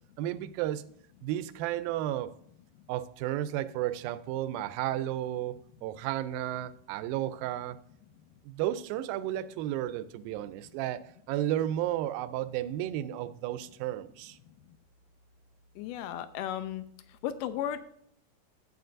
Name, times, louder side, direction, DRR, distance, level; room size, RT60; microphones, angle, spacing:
voice 1, 0.2-0.8 1.2-2.3 2.9-7.8 8.4-14.4, right 13 dB, 80° right, 2.3 m, -33 dB
voice 2, 15.8-16.8 17.1-17.8, left 11 dB, 85° left, 1.9 m, -34 dB
12.0 x 8.9 x 2.6 m
omnidirectional pair, 4.3 m